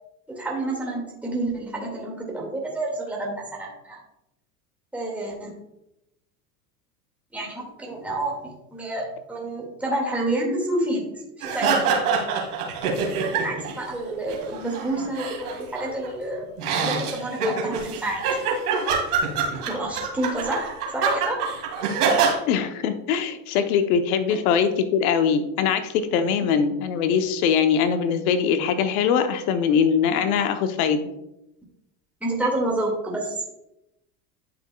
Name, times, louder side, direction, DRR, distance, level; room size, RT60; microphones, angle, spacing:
voice 1, 0.3-4.0 4.9-5.5 7.3-8.4 8.7-11.1 11.4-11.9 13.4-16.5 16.8-18.2 19.7-21.4 32.2-33.4, right 1 dB, 5° right, -3 dB, 2.1 m, -29 dB
sound 1, 11.4-13.8 14.1-16.1 16.6-22.4, right 5 dB, 85° right, 2.1 m, -25 dB
voice 2, 22.5-31.1, left 7 dB, 70° left, 9 dB, 1.0 m, -22 dB
10.5 x 5.9 x 2.3 m, 0.87 s
hypercardioid pair, 100°, 44 cm